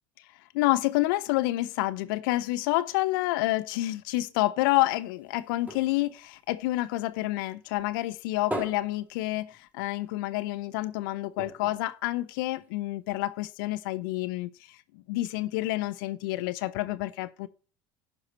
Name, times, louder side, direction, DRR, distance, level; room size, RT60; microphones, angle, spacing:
voice 1, 0.5-17.5, left 18 dB, 70° left, 0.7 m, -28 dB
sound 1, 4.7-7.4 7.8-10.0 10.4-10.5 10.7-10.9 11.3-12.9 13.5-13.6, equal, 15° right, 3.9 m, -41 dB
10.5 x 6.0 x 4.2 m
hypercardioid pair, 75°, 12 cm